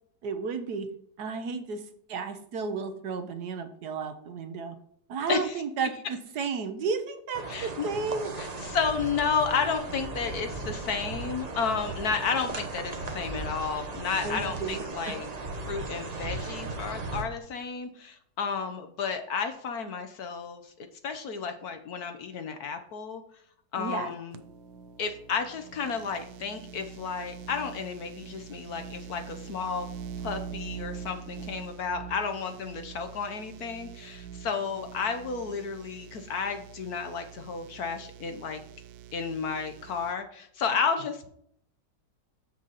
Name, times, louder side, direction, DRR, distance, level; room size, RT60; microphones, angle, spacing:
voice 1, 0.2-0.9 1.2-4.7 5.1-8.3 14.2-15.2 23.8-24.1, right 5 dB, 65° right, 8 dB, 1.3 m, -33 dB
voice 2, 5.3-5.6 7.5-7.9 8.4-15.3 15.7-20.6 21.0-23.2 23.7-24.4 25.0-29.9 30.2-38.6 39.1-41.3, left 5 dB, 60° left, 7 dB, 1.2 m, -32 dB
sound 1, 7.3-17.2, right 3 dB, 45° right, 0.5 m, -37 dB
sound 2, 24.3-40.1, right 8 dB, 85° right, 1.4 m, -44 dB
7.2 x 6.3 x 4.0 m, 0.67 s
omnidirectional pair, 2.0 m